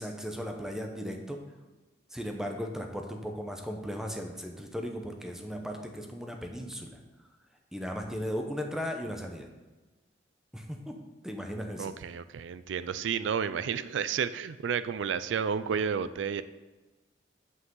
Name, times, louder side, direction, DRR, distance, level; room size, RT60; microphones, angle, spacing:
voice 1, 0.0-1.4 2.1-7.0 7.7-9.5 10.5-11.0 11.2-11.9, equal, 5° right, 3 dB, 0.9 m, -36 dB
voice 2, 11.8-16.4, right 7 dB, 85° right, 14 dB, 0.4 m, -31 dB
8.3 x 8.0 x 3.9 m, 1.2 s
head